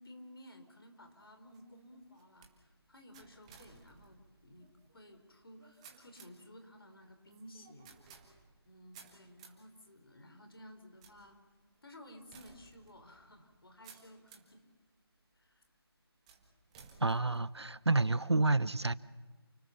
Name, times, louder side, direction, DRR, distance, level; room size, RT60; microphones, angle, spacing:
voice 1, 0.0-7.9 8.6-11.4 11.8-14.6 15.3-15.7, left 1 dB, 60° left, 6 dB, 4.7 m, -55 dB
sound 1, 1.0-14.6 15.2-15.6 16.3-18.1, right 5 dB, 15° right, 1.8 m, -60 dB
voice 2, 17.0-18.9, right 2 dB, 85° right, 18 dB, 0.9 m, -29 dB
29.0 x 18.5 x 7.2 m, 1.4 s
figure-of-eight pair, 165°, 14 cm